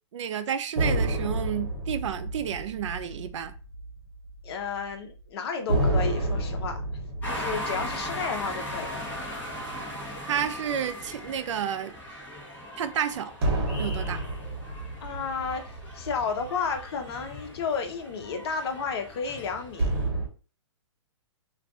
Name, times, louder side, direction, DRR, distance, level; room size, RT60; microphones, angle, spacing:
voice 1, 0.1-3.5 10.3-11.9 12.8-13.3 13.8-14.2, right 8 dB, 70° right, 0.4 m, -30 dB
sound 1, 0.8-4.5 4.7-4.9 5.7-10.3 13.4-17.0 19.8-20.3, right 1 dB, 50° right, 1.1 m, -30 dB
voice 2, 4.4-6.8 7.3-8.9 15.0-20.0, left 5 dB, 55° left, 0.7 m, -32 dB
sound 2, 7.2-20.1, left 1 dB, 10° left, 0.8 m, -39 dB
2.4 x 2.3 x 3.6 m
hypercardioid pair, 150°, 16 cm